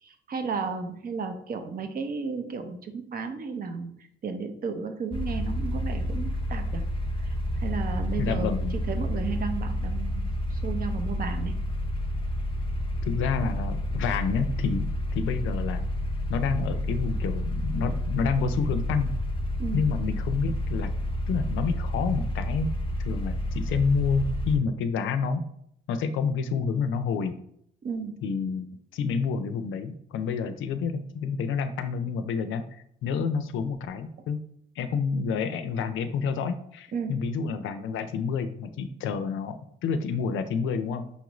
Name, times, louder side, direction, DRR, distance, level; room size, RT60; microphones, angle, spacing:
voice 1, 0.0-3.9 4.2-6.9 7.2-7.3 7.6-10.2 10.5-11.6 19.6-19.9 27.8-28.2 36.9-37.2, right 5 dB, 45° right, 6 dB, 0.6 m, -33 dB
sound 1, 5.1-24.6, left 1 dB, 25° left, 0.6 m, -30 dB
voice 2, 8.2-8.8 13.0-14.9 15.1-15.8 16.3-19.1 19.7-20.9 21.3-22.7 23.0-25.4 25.9-27.3 28.2-28.7 28.9-34.4 34.8-39.6 39.8-41.0, left 5 dB, 75° left, 10 dB, 0.4 m, -28 dB
5.3 x 2.5 x 3.0 m, 0.70 s
cardioid pair, 90°, 20 cm